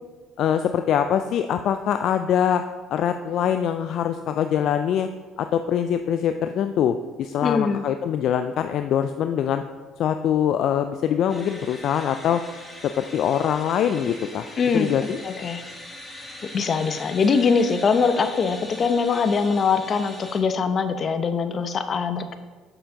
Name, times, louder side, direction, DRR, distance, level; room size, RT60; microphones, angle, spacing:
voice 1, 0.4-2.6 2.9-5.1 5.4-9.6 10.0-12.4 12.8-14.5 14.7-15.2, left 9 dB, 60° left, 8 dB, 0.3 m, -23 dB
voice 2, 7.4-7.8 14.6-14.9 15.2-15.6 16.5-22.4, left 5 dB, 45° left, 9 dB, 0.7 m, -22 dB
sound 1, 11.3-20.4, left 1 dB, 10° left, 2.3 m, -41 dB
7.9 x 6.7 x 3.8 m, 1.3 s
supercardioid pair, 70°, 0 cm